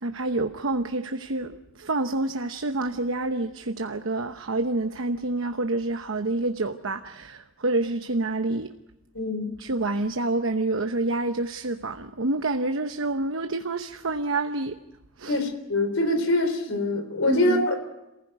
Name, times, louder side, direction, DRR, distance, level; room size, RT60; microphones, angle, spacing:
voice 1, 0.0-8.7 9.6-14.8 15.2-15.4 17.3-17.7, right 2 dB, 80° right, 1.0 m, -28 dB
voice 2, 9.1-9.5 15.3-17.8, left 1 dB, 85° left, 3.8 m, -24 dB
28.0 x 15.5 x 9.4 m
head